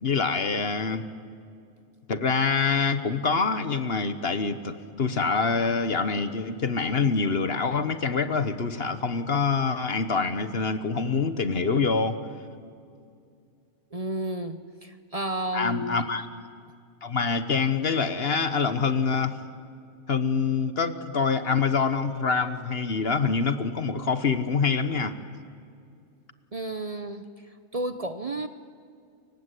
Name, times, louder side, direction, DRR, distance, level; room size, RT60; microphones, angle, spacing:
voice 1, 0.0-1.1 2.1-12.2 15.5-16.3 17.0-19.4 20.1-25.2, left 5 dB, 50° left, 11 dB, 1.5 m, -25 dB
voice 2, 13.9-16.0 26.5-27.3 27.7-28.5, right 1 dB, 30° right, 9 dB, 0.9 m, -32 dB
29.5 x 24.0 x 8.4 m, 2.4 s
omnidirectional pair, 1.3 m